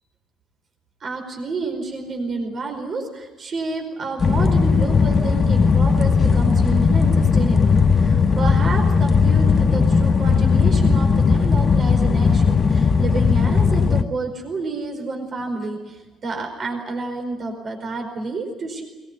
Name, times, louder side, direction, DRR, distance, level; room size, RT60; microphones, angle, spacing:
voice 1, 1.0-18.8, right 3 dB, 45° right, 3 dB, 4.9 m, -30 dB
sound 1, 4.2-14.0, left 5 dB, 35° left, 1.1 m, -17 dB
21.5 x 20.0 x 9.9 m, 1.2 s
cardioid pair, 90°, 0 cm